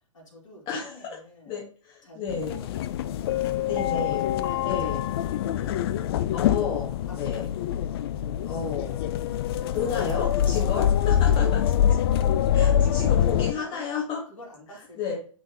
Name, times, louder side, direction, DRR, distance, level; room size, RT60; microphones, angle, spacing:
voice 1, 0.1-1.6 2.0-3.8 4.5-5.9 7.1-7.2 7.5-7.6 9.6-10.4 11.3-11.4 12.7-13.3 13.5-13.9 14.3-15.2, equal, 70° left, -1 dB, 3.1 m, -48 dB
voice 2, 0.7-1.2 1.5-2.6 3.6-4.2 4.6-5.0 6.3-7.4 8.4-9.1 9.7-11.6 12.5-14.2 15.0-15.2, left 6 dB, 30° left, -1 dB, 1.5 m, -31 dB
sound 1, 2.3-13.5, left 10 dB, 50° left, 0.4 m, -24 dB
10.0 x 3.6 x 3.0 m, 0.42 s
figure-of-eight pair, 110°, 17 cm